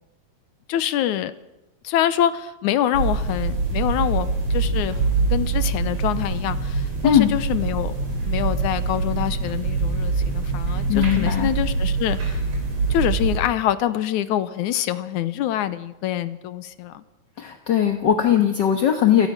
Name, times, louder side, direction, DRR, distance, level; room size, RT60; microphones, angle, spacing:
voice 1, 0.7-1.3 1.8-5.0 5.3-7.9 8.3-12.4 12.9-17.0, left 11 dB, 85° left, 14 dB, 2.4 m, -25 dB
sound 1, 2.9-13.4, right 4 dB, 55° right, 5.7 m, -24 dB
voice 2, 10.9-11.5 17.4-19.3, left 10 dB, 50° left, 6 dB, 1.4 m, -19 dB
29.5 x 17.5 x 6.0 m, 0.92 s
omnidirectional pair, 3.4 m